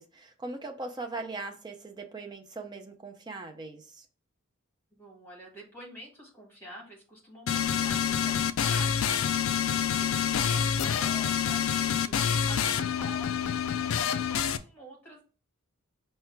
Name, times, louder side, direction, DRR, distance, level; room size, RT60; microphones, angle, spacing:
voice 1, 0.0-4.1, right 3 dB, 20° right, 0.4 m, -40 dB
voice 2, 4.9-9.3 9.6-12.2 12.5-15.2, equal, 10° left, 1.5 m, -47 dB
sound 1, 7.5-14.6, left 8 dB, 65° left, 0.3 m, -27 dB
4.7 x 2.2 x 4.5 m
head